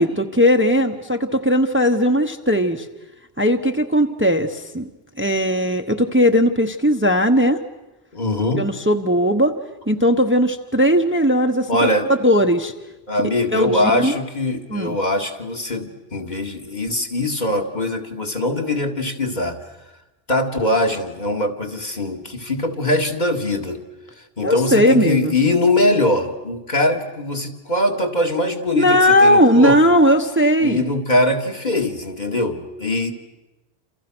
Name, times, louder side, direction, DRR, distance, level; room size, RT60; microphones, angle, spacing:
voice 1, 0.0-2.9 3.4-4.9 5.2-7.6 8.6-9.5 9.9-11.7 12.2-12.7 13.5-14.1 14.7-15.0 24.4-25.3 28.7-30.8, equal, 10° right, 5 dB, 1.0 m, -17 dB
voice 2, 8.1-8.6 11.7-12.1 13.1-19.6 20.3-23.8 24.4-29.9 30.6-33.1, left 1 dB, 45° left, 2 dB, 2.3 m, -22 dB
29.0 x 28.0 x 6.2 m, 1.0 s
omnidirectional pair, 1.1 m